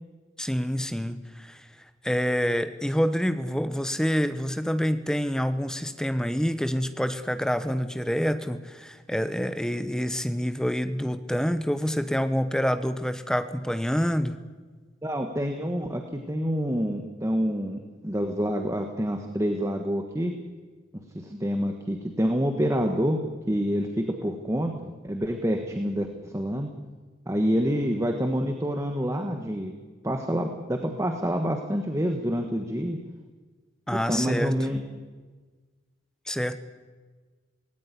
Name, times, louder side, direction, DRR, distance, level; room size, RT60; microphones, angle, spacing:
voice 1, 0.4-1.6 2.0-14.4 33.9-34.6 36.3-36.6, equal, 5° left, 11 dB, 1.0 m, -27 dB
voice 2, 15.0-20.4 21.1-23.2 23.5-26.7 27.3-29.7 30.0-33.0 33.9-34.8, equal, 15° right, 5 dB, 1.4 m, -27 dB
18.5 x 17.5 x 9.9 m, 1.4 s
head